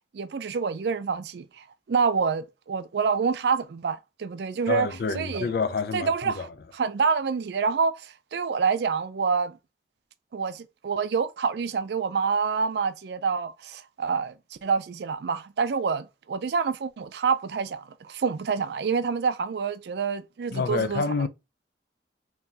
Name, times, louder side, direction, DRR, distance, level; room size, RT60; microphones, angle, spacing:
voice 1, 0.1-4.9 5.1-5.5 5.9-6.5 6.7-9.6 10.3-21.3, right 5 dB, 70° right, 0.4 m, -27 dB
voice 2, 4.7-6.5 20.5-21.3, left 4 dB, 60° left, 0.4 m, -28 dB
3.7 x 2.9 x 2.7 m
head